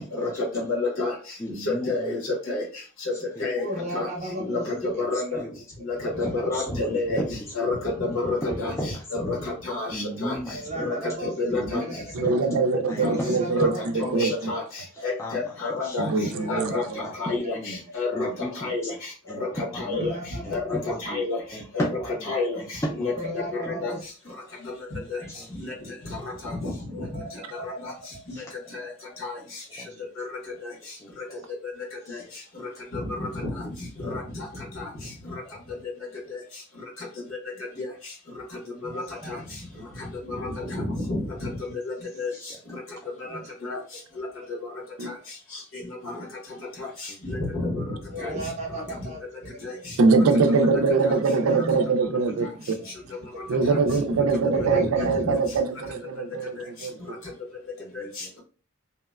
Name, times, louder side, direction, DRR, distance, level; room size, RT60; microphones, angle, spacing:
voice 1, 0.6-1.1 1.7-2.2 2.5-2.6 3.4-3.6 3.9-4.1 4.5-5.4 5.8-7.2 7.5-8.7 9.1-10.3 10.8-10.9 11.2-11.8 13.0-13.1 13.6-13.7 14.0-14.6 15.0-16.1 16.5-16.8 17.2-18.3 18.6-18.9 19.6-20.1 20.5-20.6 21.0-21.4 21.7-21.8 22.3-22.6 23.0-23.1 23.8-23.9 25.1-25.2 26.4-26.7 28.7-28.8 29.2-29.4 30.6-30.7 32.1-32.2 32.9-33.5 34.0-34.5 34.8-34.9 37.8-37.9 38.9-39.4 40.3-41.2 41.8-42.3 43.6-43.8 44.2-44.3 45.1-45.2 46.0-46.1 47.2-48.3 49.6-49.7 51.0-51.1 54.6-55.1, left 3 dB, 75° left, 1.2 m, -29 dB
voice 2, 1.4-2.2 3.4-3.5 4.4-5.6 6.2-7.8 8.4-9.5 9.9-11.0 11.5-12.6 12.9-13.9 14.2-14.5 14.9-16.0 17.0-17.8 18.1-18.9 19.3-20.1 20.4-21.2 21.5-22.3 22.6-23.3 23.6-23.9 25.3-25.8 26.3-26.4 26.7-26.8 28.3-28.9 29.4-29.5 29.8-30.1 30.8-31.4 32.0-32.3 34.8-35.0 35.4-35.5 42.3-42.6 43.0-43.4 47.1-47.2 49.7-49.8 52.7-53.2 56.5-56.9 57.8-58.4, equal, 15° left, 0.3 m, -36 dB
voice 3, 3.6-4.9 6.1-6.6 10.5-11.3 11.8-12.1 13.0-13.8 16.2-17.0 19.9-20.6 23.2-24.0 26.9-27.8 28.1-28.2 29.9-30.0 38.8-39.4 41.7-41.8 43.2-43.4 48.1-49.2 51.2-51.9 54.5-55.2, right 1 dB, 30° right, 0.7 m, -35 dB
voice 4, 12.1-13.7 14.1-14.5 16.0-16.7 45.0-45.1 50.0-52.5 53.5-57.0, right 4 dB, 80° right, 0.4 m, -22 dB
2.8 x 2.2 x 2.2 m
head